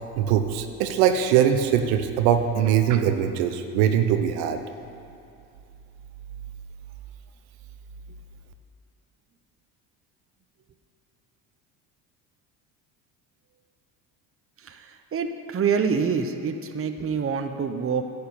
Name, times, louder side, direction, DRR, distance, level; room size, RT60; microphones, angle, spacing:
voice 1, 0.2-4.6, right 9 dB, 75° right, 7 dB, 1.0 m, -21 dB
voice 2, 14.6-18.0, right 6 dB, 25° right, 7 dB, 0.9 m, -26 dB
10.5 x 6.7 x 8.7 m, 2.7 s
hypercardioid pair, 75°, 48 cm